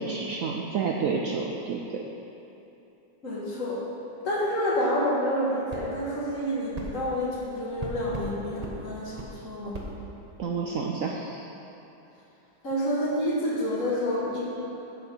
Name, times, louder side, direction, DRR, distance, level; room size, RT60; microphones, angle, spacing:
voice 1, 0.0-1.8 10.4-11.5, right 5 dB, 90° right, 0 dB, 0.7 m, -29 dB
voice 2, 3.2-3.8 4.2-9.9 12.6-14.4, equal, 45° left, -5 dB, 1.7 m, -28 dB
sound 1, 5.7-5.9 6.7-6.9 7.8-8.3 8.6-8.8 9.2-9.3 9.7-9.9, right 2 dB, 40° right, 0.5 m, -36 dB
7.5 x 6.9 x 5.5 m, 2.9 s
omnidirectional pair, 2.0 m